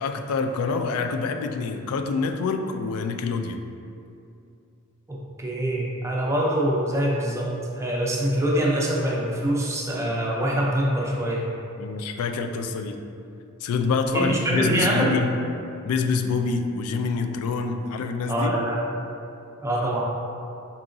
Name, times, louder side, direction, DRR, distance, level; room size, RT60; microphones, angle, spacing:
voice 1, 0.0-3.6 11.8-13.0 13.6-15.3 15.8-18.5, left 4 dB, 75° left, 8 dB, 0.3 m, -26 dB
voice 2, 5.1-11.5 14.1-15.1 18.3-18.9 19.6-20.0, right 1 dB, 15° right, -4 dB, 0.5 m, -24 dB
4.7 x 2.9 x 2.6 m, 2.5 s
head